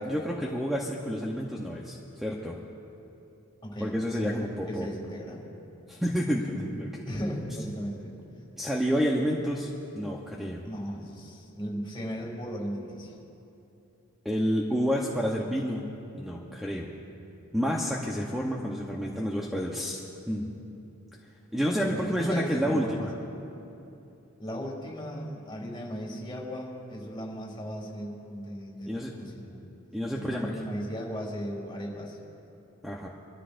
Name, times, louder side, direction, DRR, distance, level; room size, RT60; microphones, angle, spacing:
voice 1, 0.0-2.6 3.8-4.9 5.9-7.0 8.6-9.7 9.9-10.6 14.2-15.9 16.1-16.9 17.5-20.5 21.5-23.1 28.9-29.1 29.9-30.7 32.8-33.1, equal, ahead, -2 dB, 0.9 m, -29 dB
voice 2, 3.6-4.4 4.7-5.5 7.0-8.1 10.6-13.1 21.8-23.1 24.4-29.6 30.3-32.2, equal, 25° left, -2 dB, 2.6 m, -36 dB
25.5 x 13.5 x 2.6 m, 2.9 s
head